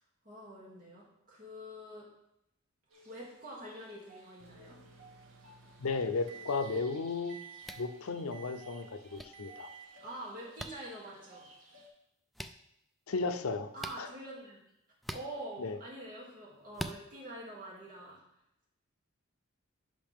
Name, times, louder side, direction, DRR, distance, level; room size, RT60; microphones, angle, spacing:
voice 1, 0.2-2.1 3.0-4.8 10.0-11.5 13.7-14.6 15.1-18.2, right 1 dB, 40° right, -5 dB, 2.8 m, -46 dB
sound 1, 2.9-11.9, right 2 dB, 80° right, 1.9 m, -57 dB
Microwave oven, 4.4-7.0 7.3-7.9 8.3-8.9 9.3-9.9, right 7 dB, 65° right, 0.6 m, -53 dB
voice 2, 5.8-7.4 7.8-9.7 13.1-13.7 14.0-14.1 15.6-15.8, left 4 dB, 80° left, 9 dB, 0.7 m, -34 dB
sound 2, 7.6-7.9 9.2-9.3 10.6-10.7 12.3-12.5 13.8-14.0 15.0-15.3 16.7-17.0, equal, ahead, 0.3 m, -40 dB
10.0 x 5.6 x 3.6 m, 0.81 s
head